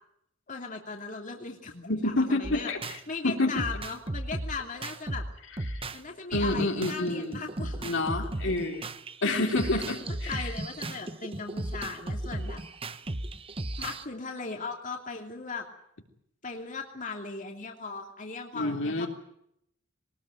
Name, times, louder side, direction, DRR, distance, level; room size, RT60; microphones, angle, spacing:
voice 1, 0.5-2.7 3.1-5.2 5.9-8.0 9.7-12.6 13.8-15.6 16.4-19.1, left 4 dB, 40° left, 2 dB, 2.8 m, -38 dB
voice 2, 1.9-3.0 3.2-3.6 5.7-5.9 6.3-7.5 7.8-8.9 9.2-10.5 18.5-19.1, left 2 dB, 65° left, 3 dB, 3.3 m, -28 dB
sound 1, 2.4-3.0 3.6-6.0 6.3-14.0, right 1 dB, 30° right, 1.0 m, -35 dB
22.0 x 19.5 x 9.2 m, 0.75 s
head